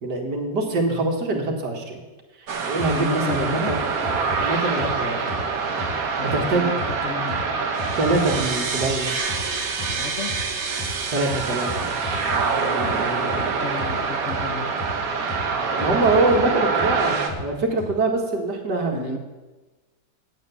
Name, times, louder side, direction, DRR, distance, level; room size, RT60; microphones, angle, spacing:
voice 1, 0.0-2.0 2.4-3.9 4.4-5.2 6.2-6.8 8.0-9.1 11.1-11.9 15.8-19.2, right 2 dB, 70° right, 2 dB, 2.4 m, -24 dB
sound 1, 2.5-17.3, right 5 dB, 55° right, 1.5 m, -25 dB
sound 2, 2.8-2.9 3.3-4.4 4.8-4.9 5.3-5.4 5.8-5.9 6.3-6.4 6.8-6.9 7.3-7.4 7.8-8.4 8.8-8.9 9.3-9.4 9.8-9.9 10.3-10.4 10.8-10.9 11.3-12.4 12.8-12.9 13.3-13.4 13.8-13.9 14.3-14.4 14.8-14.9 15.3-15.4 15.8-16.4 16.8-16.9 17.3-17.4 17.8-17.9, left 2 dB, 5° left, 3.3 m, -33 dB
voice 2, 2.9-3.7 6.2-7.4 9.9-10.3 12.3-14.7 18.9-19.2, left 5 dB, 55° left, 5 dB, 0.9 m, -33 dB
9.2 x 8.1 x 8.3 m, 1.2 s
omnidirectional pair, 1.9 m